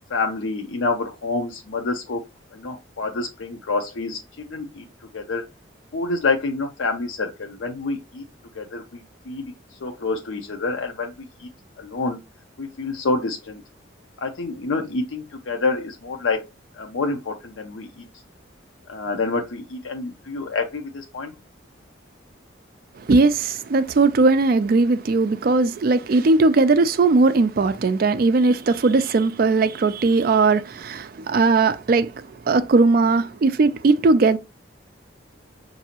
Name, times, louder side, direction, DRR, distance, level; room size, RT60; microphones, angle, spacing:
voice 1, 0.1-2.2 2.5-4.9 5.1-5.4 5.9-8.2 8.5-9.5 9.8-11.5 11.8-12.2 12.6-13.6 14.2-16.4 16.7-18.0 18.9-21.3, left 3 dB, 80° left, 0.5 m, -27 dB
voice 2, 23.0-34.4, right 3 dB, 45° right, 0.3 m, -18 dB
5.7 x 2.6 x 2.8 m
head